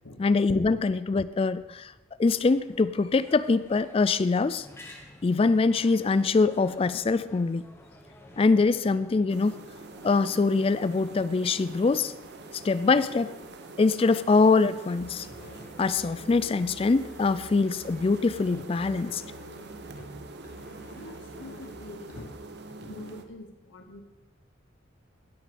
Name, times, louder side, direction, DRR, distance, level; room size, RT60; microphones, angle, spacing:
voice 1, 0.2-1.9 2.2-4.7 5.2-7.7 8.4-9.5 10.0-12.1 12.5-13.3 13.8-15.3 15.8-19.2, left 4 dB, 30° left, 15 dB, 0.3 m, -23 dB
sound 1, 2.2-18.6, left 1 dB, 15° left, 1.3 m, -53 dB
sound 2, 9.3-23.2, right 2 dB, 55° right, 0.9 m, -45 dB
Musical instrument, 15.0-22.5, right 1 dB, 50° left, 1.6 m, -49 dB
voice 2, 20.9-22.4 22.8-24.0, left 2 dB, 80° left, 6 dB, 1.1 m, -45 dB
17.0 x 6.3 x 5.1 m, 1.1 s
head